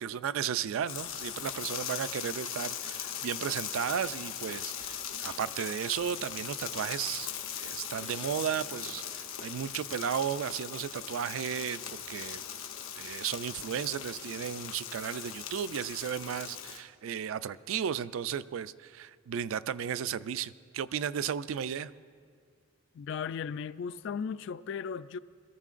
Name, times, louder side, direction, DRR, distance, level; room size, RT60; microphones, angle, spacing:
voice 1, 0.0-12.4 13.0-21.9, right 8 dB, 75° right, 0.3 m, -34 dB
sound 1, 0.9-16.8, left 9 dB, 80° left, 0.9 m, -40 dB
voice 2, 22.9-25.2, left 6 dB, 60° left, 0.3 m, -36 dB
21.5 x 14.5 x 2.5 m
head